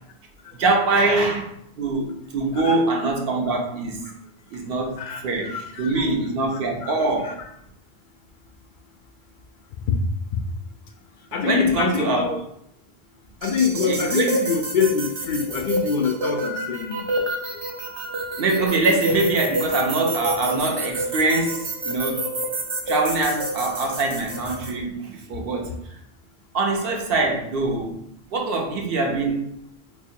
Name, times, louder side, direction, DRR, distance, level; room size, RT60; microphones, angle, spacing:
voice 1, 0.6-1.5 1.8-4.0 4.5-7.3 11.4-12.3 13.9-14.3 18.4-22.3 22.9-25.8 26.5-28.0 28.3-29.4, right 3 dB, 65° right, 1 dB, 0.9 m, -23 dB
voice 2, 5.0-6.1 6.5-7.0 7.2-7.5 9.9-10.0 11.3-12.5 13.4-17.1, left 6 dB, 60° left, 4 dB, 0.6 m, -25 dB
sound 1, 13.4-24.7, right 1 dB, 40° right, 0.4 m, -28 dB
4.5 x 2.5 x 2.6 m, 0.74 s
omnidirectional pair, 1.1 m